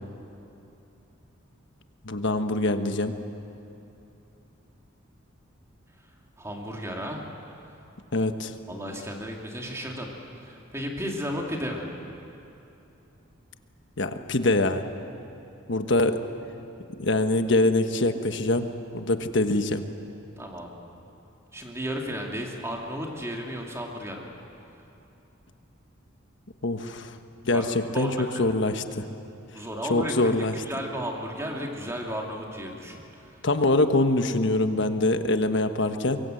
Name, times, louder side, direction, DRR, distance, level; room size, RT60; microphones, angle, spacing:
voice 1, 2.0-3.1 8.1-8.5 14.0-14.8 15.7-16.2 17.0-18.7 18.9-19.8 26.6-27.1 27.4-28.1 28.4-29.0 29.9-30.5 33.4-36.2, left 2 dB, 60° left, 8 dB, 1.3 m, -24 dB
voice 2, 6.4-7.2 8.7-10.1 10.4-11.9 20.4-20.7 21.5-24.3 27.5-27.6 27.9-28.5 29.5-33.4, equal, 15° right, 0 dB, 2.7 m, -34 dB
25.0 x 23.0 x 7.9 m, 2.9 s
head